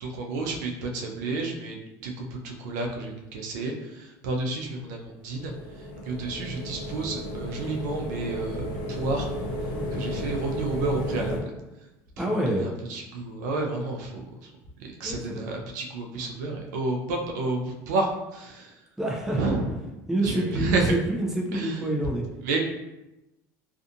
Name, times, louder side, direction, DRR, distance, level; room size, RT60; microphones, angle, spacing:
voice 1, 0.0-5.5 6.0-9.3 9.9-11.5 12.2-14.5 14.8-18.7 19.3-19.8 20.2-20.9 21.5-21.8 22.4-22.6, right 2 dB, 90° right, 2 dB, 0.5 m, -30 dB
sound 1, 5.2-11.4, left 1 dB, 60° left, 0.5 m, -33 dB
voice 2, 12.2-12.7 15.0-15.5 19.0-19.4 20.1-22.3, right 1 dB, 5° right, -1 dB, 0.5 m, -27 dB
2.5 x 2.4 x 2.6 m, 0.97 s
supercardioid pair, 120°, 9 cm